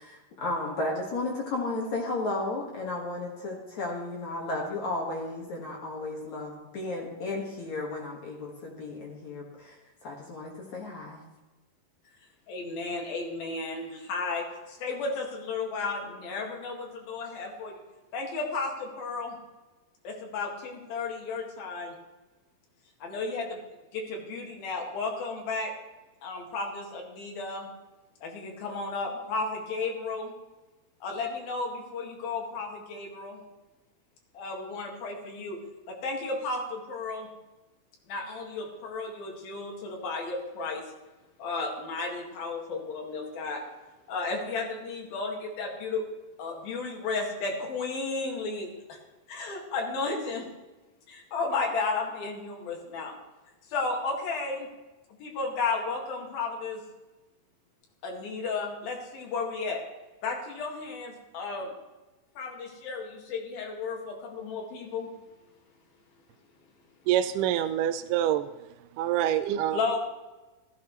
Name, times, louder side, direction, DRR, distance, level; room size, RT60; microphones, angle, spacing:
voice 1, 0.0-9.8 10.0-11.2, left 2 dB, 55° left, -2 dB, 2.8 m, -34 dB
voice 2, 12.5-17.8 18.1-19.4 20.0-22.0 23.0-23.6 23.9-25.7 26.2-27.7 28.2-30.3 31.0-33.4 34.3-35.6 35.9-37.3 38.1-40.9 41.4-43.6 44.1-46.0 46.4-49.0 49.3-50.5 51.1-53.1 53.7-54.7 55.2-56.8 58.0-59.8 60.2-61.7 62.4-65.1 69.7-70.0, left 3 dB, 80° left, 0 dB, 3.9 m, -33 dB
voice 3, 67.1-68.5 69.0-69.8, right 11 dB, 80° right, 10 dB, 1.9 m, -26 dB
14.5 x 14.0 x 3.2 m, 1.1 s
omnidirectional pair, 4.1 m